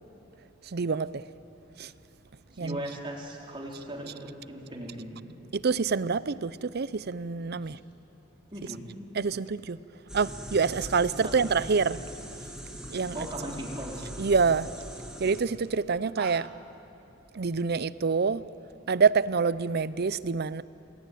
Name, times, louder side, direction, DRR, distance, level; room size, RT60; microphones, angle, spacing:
voice 1, 0.6-1.2 1.8-1.9 2.6-2.8 5.5-7.8 9.1-9.8 10.1-12.0 12.9-13.2 14.2-14.7 15.2-16.5 17.3-18.5 18.9-20.6, right 5 dB, 55° right, 0.6 m, -26 dB
voice 2, 2.5-5.2 7.6-7.9 8.5-8.8 11.2-11.3 13.1-14.0, right 1 dB, 25° right, 3.7 m, -38 dB
sound 1, 10.1-15.4, equal, 5° right, 2.7 m, -41 dB
sound 2, 11.4-13.3 13.6-14.1 14.4-14.5 14.8-15.0 15.3-15.4 15.9-16.7, right 5 dB, 85° right, 1.5 m, -47 dB
28.0 x 21.0 x 9.2 m
head